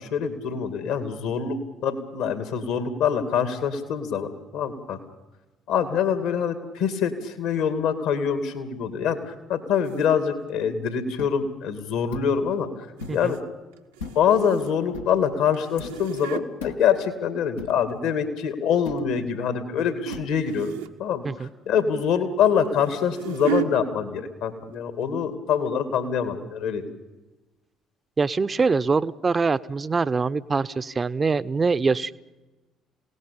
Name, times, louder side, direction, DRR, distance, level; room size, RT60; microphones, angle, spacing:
voice 1, 0.0-1.6 1.8-5.0 5.7-12.9 13.1-13.4 14.1-20.7 21.0-26.8, left 7 dB, 70° left, 10 dB, 2.4 m, -25 dB
sound 1, 9.8-10.0 13.0-13.4 13.7-14.9 15.5-16.5 17.5-18.3 18.7-19.0 20.0-20.2 20.4-21.0 22.4-23.7 24.6-24.8 25.0-25.1 25.7-25.8, right 11 dB, 80° right, 1.1 m, -33 dB
sound 2, 11.2-11.4 12.1-12.4 13.0-13.3 14.0-14.4 14.9-15.2 15.8-16.1 16.6-16.9 17.6-17.9 18.8-19.2 20.1-20.3, left 5 dB, 85° left, 1.3 m, -38 dB
voice 2, 28.2-32.1, right 4 dB, 30° right, 14 dB, 0.7 m, -24 dB
27.5 x 18.0 x 8.6 m, 1.1 s
hypercardioid pair, 50°, 0 cm